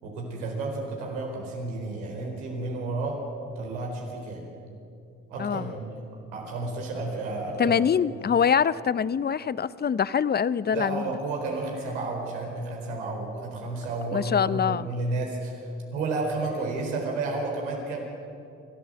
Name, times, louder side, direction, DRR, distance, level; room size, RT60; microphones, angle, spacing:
voice 1, 0.0-3.2 3.5-4.4 5.3-5.9 6.3-7.8 10.7-15.6 15.9-18.0, right 3 dB, 90° right, 0 dB, 4.4 m, -31 dB
voice 2, 5.4-5.7 7.6-11.0 14.1-14.9, left 7 dB, 30° left, 18 dB, 0.7 m, -24 dB
26.5 x 13.0 x 7.8 m, 2.6 s
hypercardioid pair, 60°, 35 cm